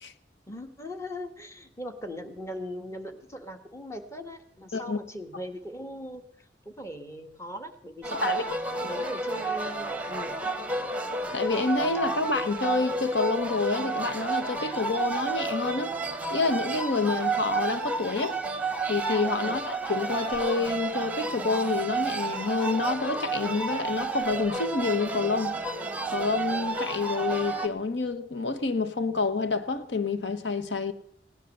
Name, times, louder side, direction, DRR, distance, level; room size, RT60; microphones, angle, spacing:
voice 1, 0.5-10.4 19.4-19.6, equal, 15° left, 1.5 m, -40 dB
sound 1, 8.0-27.7, right 3 dB, 10° right, 1.1 m, -31 dB
voice 2, 8.1-8.4 11.3-15.9 16.3-18.4 18.9-25.6 26.1-30.9, left 4 dB, 80° left, 1.0 m, -28 dB
18.0 x 10.5 x 6.7 m
head